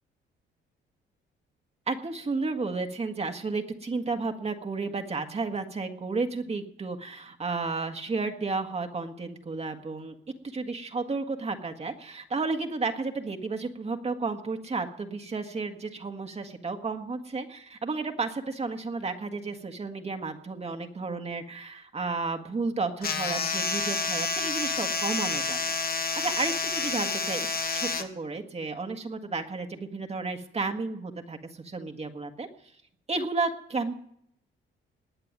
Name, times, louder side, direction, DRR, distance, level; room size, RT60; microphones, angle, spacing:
voice 1, 1.9-10.2 10.4-25.6 26.2-27.5 27.7-32.5 33.1-33.9, right 3 dB, 30° right, 5 dB, 1.6 m, -32 dB
sound 1, 23.0-28.0, left 4 dB, 50° left, 1.6 m, -29 dB
19.5 x 6.8 x 9.6 m, 0.71 s
cardioid pair, 90°, 20 cm